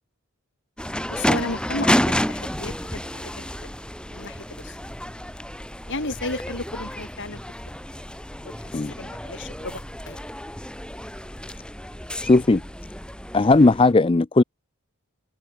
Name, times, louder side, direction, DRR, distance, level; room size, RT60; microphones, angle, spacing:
sound 1, 0.8-13.9, equal, 5° left, 7.8 m, -30 dB
voice 1, 1.1-3.7 4.1-4.8 5.9-7.4 8.6-9.8 10.1-10.2, left 2 dB, 55° left, 4.3 m, -34 dB
voice 2, 12.2-12.6 13.3-14.4, left 3 dB, 25° left, 0.5 m, -17 dB
head